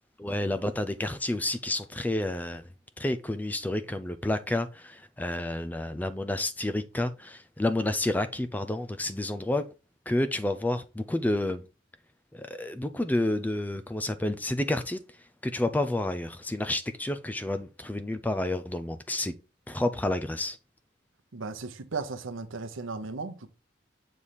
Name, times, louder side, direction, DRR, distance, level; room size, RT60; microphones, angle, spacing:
voice 1, 0.2-2.6 3.0-9.7 10.1-11.6 12.3-15.0 15.4-19.3 19.7-20.6, left 1 dB, 10° left, 0.3 m, -30 dB
voice 2, 21.3-23.5, right 4 dB, 85° right, 0.8 m, -36 dB
7.1 x 3.2 x 4.1 m
head